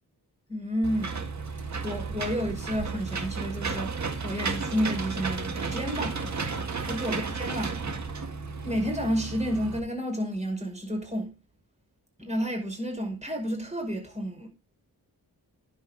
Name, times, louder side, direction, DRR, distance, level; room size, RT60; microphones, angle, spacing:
voice 1, 0.5-1.3 1.5-3.9 4.2-6.4 6.9-7.8 8.6-11.3 12.2-14.5, equal, 20° right, 5.7 m, -31 dB
Engine / Mechanisms, 0.8-9.8, right 4 dB, 50° right, 1.8 m, -33 dB
10.5 x 7.9 x 4.0 m
wide cardioid pair, 90°, 37 cm